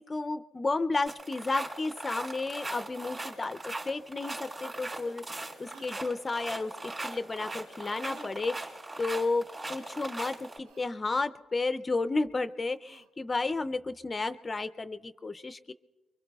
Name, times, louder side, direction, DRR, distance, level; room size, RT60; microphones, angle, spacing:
voice 1, 0.0-5.2 5.6-6.7 7.0-15.7, left 3 dB, 30° left, 10 dB, 0.4 m, -32 dB
sound 1, 1.1-10.6, right 2 dB, 35° right, 3.5 m, -39 dB
sound 2, 5.6-6.0 8.0-8.4 9.9-10.2 10.6-10.9 12.8-13.1, right 3 dB, 90° right, 0.6 m, -52 dB
25.0 x 23.5 x 2.3 m, 1.3 s
cardioid pair, 90°, 0 cm